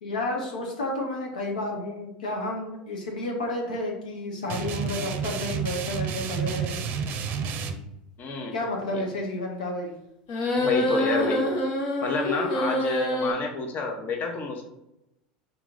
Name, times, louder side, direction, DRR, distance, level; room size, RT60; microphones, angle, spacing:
voice 1, 0.0-6.8 8.5-9.9, left 2 dB, 90° left, 0 dB, 0.8 m, -31 dB
sound 1, 4.5-7.7, right 7 dB, 50° right, 0.5 m, -30 dB
voice 2, 8.2-8.6 8.9-9.0 10.6-11.5 12.0-14.6, left 4 dB, 45° left, 2 dB, 0.9 m, -29 dB
sound 2, 10.3-13.3, equal, 65° left, 1.2 m, -26 dB
4.0 x 2.9 x 3.8 m, 0.87 s
hypercardioid pair, 90°, 4 cm